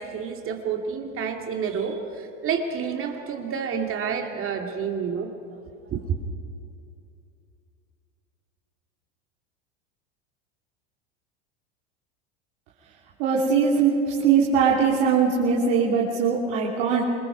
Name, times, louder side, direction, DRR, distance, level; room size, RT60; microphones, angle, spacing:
voice 1, 0.0-5.3 5.9-6.2, right 6 dB, 35° right, 3 dB, 2.3 m, -29 dB
voice 2, 13.2-17.0, right 6 dB, 60° right, -5 dB, 3.2 m, -21 dB
27.5 x 21.0 x 4.8 m, 2.6 s
hypercardioid pair, 90°, 36 cm